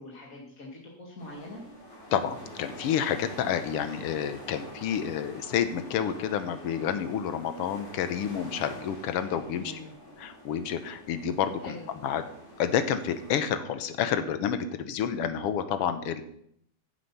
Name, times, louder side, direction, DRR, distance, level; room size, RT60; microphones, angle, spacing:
voice 1, 0.0-1.6 9.5-9.9 11.6-11.9, left 1 dB, 30° left, -3 dB, 1.9 m, -43 dB
sound 1, 1.2-13.3, left 1 dB, 50° left, 4.2 m, -46 dB
voice 2, 2.1-9.8 10.2-11.8 12.0-12.2 12.6-16.2, left 8 dB, 70° left, 9 dB, 1.4 m, -29 dB
14.5 x 7.9 x 5.5 m, 0.71 s
omnidirectional pair, 3.5 m